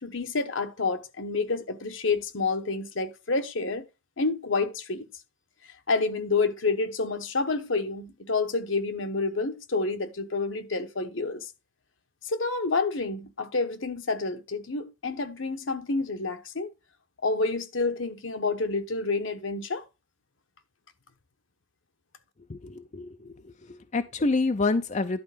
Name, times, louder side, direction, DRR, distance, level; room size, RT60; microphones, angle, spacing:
voice 1, 0.0-3.9 4.2-5.1 5.9-11.5 12.3-16.7 17.2-19.8, left 3 dB, 70° left, 1.2 m, -28 dB
voice 2, 22.5-25.2, left 3 dB, 35° left, 0.5 m, -28 dB
11.0 x 4.2 x 5.0 m
head